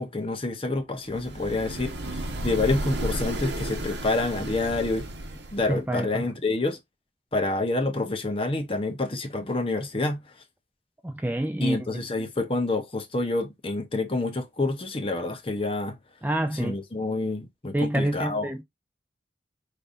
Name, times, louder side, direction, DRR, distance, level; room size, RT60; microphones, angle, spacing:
voice 1, 0.0-5.1 5.5-6.8 7.3-10.2 11.6-16.0 16.5-18.5, left 2 dB, 30° left, 0.8 m, -28 dB
sound 1, 1.1-5.8, right 1 dB, 75° right, 1.1 m, -33 dB
voice 2, 5.7-6.2 11.0-12.0 16.2-16.8 17.7-18.6, right 1 dB, 10° right, 0.4 m, -27 dB
5.4 x 3.3 x 2.5 m
head